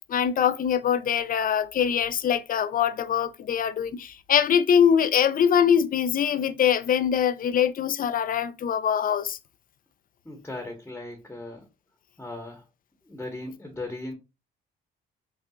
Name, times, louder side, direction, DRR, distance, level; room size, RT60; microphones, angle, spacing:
voice 1, 0.1-9.4, left 8 dB, 45° left, 0.5 m, -23 dB
voice 2, 10.2-11.6 12.2-12.6 13.1-14.1, left 2 dB, 10° left, 1.1 m, -37 dB
5.5 x 2.4 x 2.4 m
cardioid pair, 90°, 20 cm